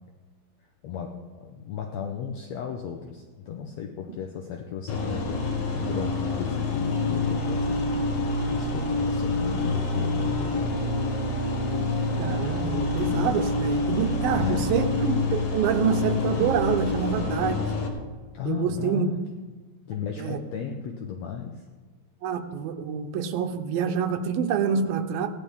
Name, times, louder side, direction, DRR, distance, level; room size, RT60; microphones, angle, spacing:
voice 1, 0.8-5.4 5.7-8.0 8.5-10.7 14.1-14.7 18.3-19.2 19.8-21.6, left 7 dB, 85° left, 2 dB, 1.5 m, -35 dB
sound 1, 4.9-17.9, left 2 dB, 55° left, 2.0 m, -27 dB
voice 2, 12.2-17.6 18.5-19.1 20.2-20.4 22.2-25.3, right 7 dB, 80° right, 6 dB, 2.7 m, -26 dB
17.0 x 11.0 x 3.6 m, 1.3 s
omnidirectional pair, 4.3 m